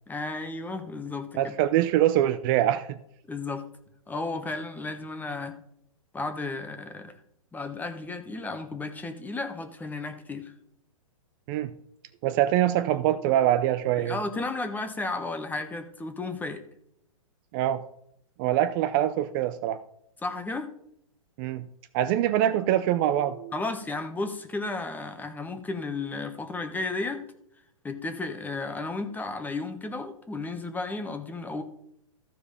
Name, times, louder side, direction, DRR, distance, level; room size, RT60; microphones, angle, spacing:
voice 1, 0.1-1.5 3.3-3.6 4.1-5.6 6.1-7.1 7.5-10.5 14.0-16.6 20.2-20.7 23.5-27.2 27.8-31.6, left 3 dB, 10° left, 8 dB, 1.2 m, -33 dB
voice 2, 1.3-3.0 11.5-11.7 12.2-14.2 17.5-17.8 18.4-19.8 21.4-21.6 21.9-23.5, right 12 dB, 40° right, 12 dB, 0.6 m, -24 dB
14.5 x 4.8 x 5.0 m, 0.73 s
hypercardioid pair, 125°, 18 cm